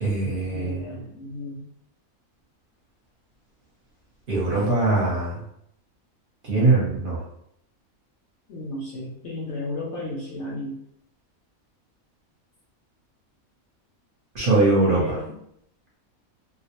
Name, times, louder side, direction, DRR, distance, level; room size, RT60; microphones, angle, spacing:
voice 1, 0.0-0.9 4.3-5.3 6.5-7.2 14.3-15.2, right 2 dB, 45° right, -6 dB, 0.8 m, -21 dB
voice 2, 0.5-1.6 8.5-10.8 14.9-15.3, left 1 dB, 65° left, -3 dB, 0.7 m, -33 dB
2.3 x 2.1 x 2.8 m, 0.73 s
omnidirectional pair, 1.5 m